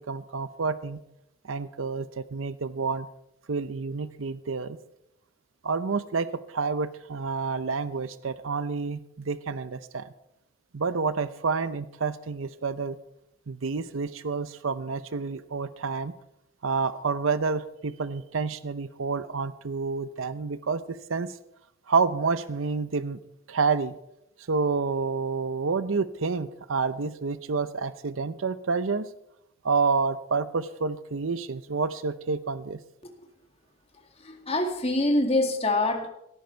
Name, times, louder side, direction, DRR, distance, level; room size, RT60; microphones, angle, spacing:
voice 1, 0.1-1.0 1.5-3.1 3.5-4.8 5.6-10.1 10.7-13.0 13.5-16.1 16.6-21.3 21.9-23.2 23.5-24.0 24.5-29.1 29.6-32.8, right 4 dB, 85° right, 14 dB, 0.7 m, -29 dB
voice 2, 34.2-36.1, left 2 dB, 30° left, 3 dB, 2.0 m, -25 dB
17.5 x 15.0 x 4.5 m, 0.82 s
head